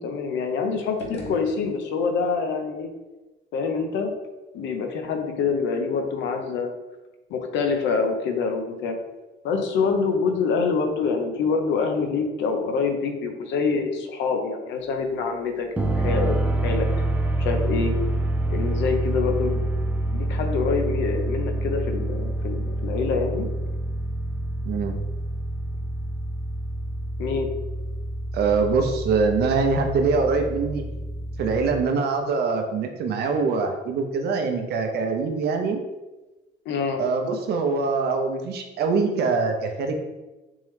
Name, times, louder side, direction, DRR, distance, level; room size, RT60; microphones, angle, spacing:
voice 1, 0.0-2.9 3.5-4.1 4.5-6.7 7.3-9.0 9.4-16.9 17.4-17.9 18.5-19.6 20.1-23.5 27.2-27.5 36.7-37.0, left 5 dB, 85° left, 4 dB, 0.6 m, -26 dB
sound 1, 0.8-2.3, left 3 dB, 35° left, 0.7 m, -39 dB
sound 2, 15.8-31.8, right 2 dB, 10° right, 0.3 m, -27 dB
voice 2, 24.6-25.0 28.3-30.8 31.4-35.8 37.0-39.9, right 4 dB, 60° right, 4 dB, 0.6 m, -23 dB
3.6 x 3.1 x 3.2 m, 1.1 s
cardioid pair, 140°, 18 cm